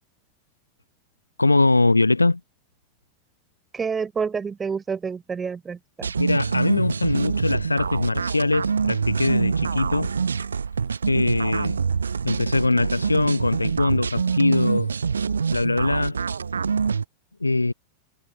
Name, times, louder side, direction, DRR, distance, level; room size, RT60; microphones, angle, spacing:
voice 1, 1.4-2.4 6.2-10.1 11.1-11.8 12.2-14.9 15.5-16.2 17.4-17.7, left 2 dB, 80° left, 0.8 m, -22 dB
voice 2, 3.7-6.1, right 5 dB, 15° right, 4.6 m, -28 dB
sound 1, 6.0-17.0, right 6 dB, 75° right, 0.9 m, -25 dB
figure-of-eight pair, 90°, 0 cm